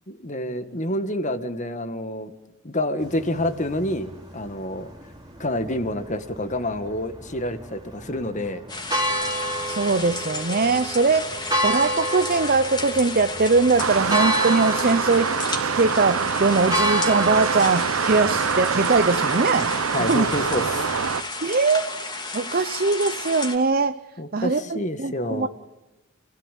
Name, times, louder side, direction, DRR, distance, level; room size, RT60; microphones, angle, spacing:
voice 1, 0.1-2.3 2.6-4.9 5.4-8.6 18.2-18.3 19.9-21.1 24.2-25.5, left 1 dB, 35° left, 10 dB, 1.8 m, -28 dB
sound 1, 3.0-21.1, equal, 20° right, 3.8 m, -31 dB
sound 2, 8.7-23.6, left 3 dB, 20° left, 2.9 m, -33 dB
voice 2, 9.6-15.3 15.8-20.3 21.4-21.9 22.3-24.0 24.3-25.5, right 4 dB, 45° right, 11 dB, 0.7 m, -21 dB
sound 3, 13.8-21.2, right 6 dB, 85° right, 0.9 m, -25 dB
29.0 x 17.0 x 9.3 m, 1.1 s
head